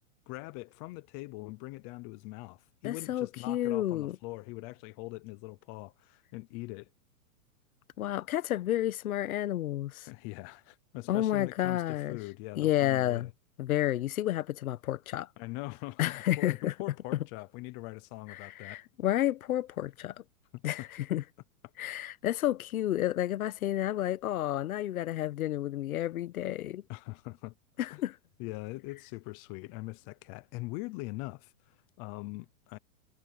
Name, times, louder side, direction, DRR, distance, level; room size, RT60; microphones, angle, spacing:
voice 1, 0.3-6.9 10.1-13.3 15.4-18.8 20.5-20.9 26.9-27.5 27.9-28.0 28.4-32.8, left 22 dB, 20° left, 0.5 m, -42 dB
voice 2, 2.8-4.2 8.0-10.1 11.1-12.2 12.6-13.3 13.6-15.3 16.0-16.7 18.3-20.1 20.6-21.2 21.8-26.8 27.8-28.1, left 13 dB, 75° left, 1.4 m, -31 dB
supercardioid pair, 155°, 43 cm